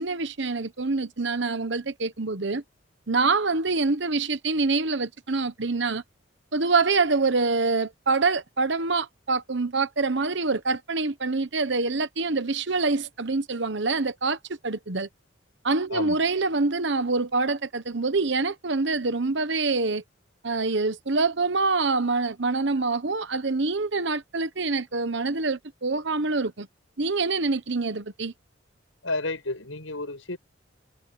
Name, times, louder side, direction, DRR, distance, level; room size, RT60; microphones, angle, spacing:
voice 1, 0.0-2.6 3.1-6.0 6.5-14.4 14.6-15.1 15.6-20.0 20.4-26.7 27.0-28.3, right 3 dB, 60° right, 1.1 m, -25 dB
voice 2, 15.9-16.3 29.0-30.4, left 2 dB, 85° left, 7.3 m, -31 dB
head